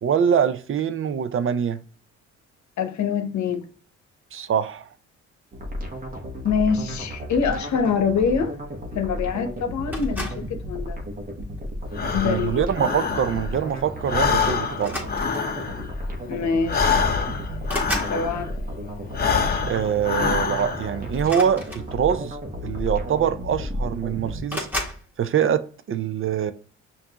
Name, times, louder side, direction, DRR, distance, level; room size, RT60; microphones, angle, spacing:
voice 1, 0.0-1.8 4.3-4.9 12.2-15.0 19.6-22.4 22.6-24.7 25.2-26.5, right 8 dB, 45° right, 0.5 m, -24 dB
voice 2, 2.8-3.6 6.4-8.6 8.9-11.0 12.1-12.7 16.3-17.1 18.1-18.5, left 6 dB, 70° left, 0.9 m, -25 dB
sound 1, 5.5-24.4, equal, 30° right, 1.1 m, -33 dB
sound 2, 9.9-10.5 11.4-11.7 13.2-13.4 13.7-13.9 14.7-15.6 16.6-16.7 17.0-18.2 21.2-22.3 23.2-23.3 23.5-24.0 24.5-25.0, left 1 dB, 5° right, 1.5 m, -33 dB
Breathing, 11.9-13.7 14.0-18.6 19.1-21.0, left 5 dB, 30° left, 0.7 m, -26 dB
5.8 x 2.6 x 2.8 m
cardioid pair, 90°, 30 cm